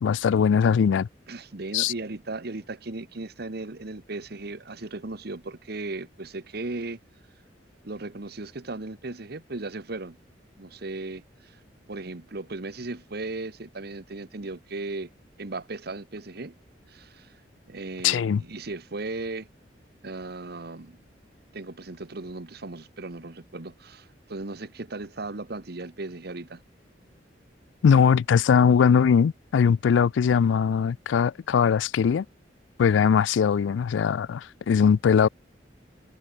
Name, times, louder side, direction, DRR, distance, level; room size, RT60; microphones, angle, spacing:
voice 1, 0.0-1.1 1.7-1.9 18.0-18.4 27.8-32.3 32.8-35.3, left 7 dB, 90° left, 0.3 m, -20 dB
voice 2, 1.3-7.0 7.8-10.2 10.6-11.6 11.9-15.1 15.4-16.6 16.9-17.3 17.7-19.5 20.0-21.0 21.5-26.6, right 2 dB, 60° right, 1.3 m, -36 dB
head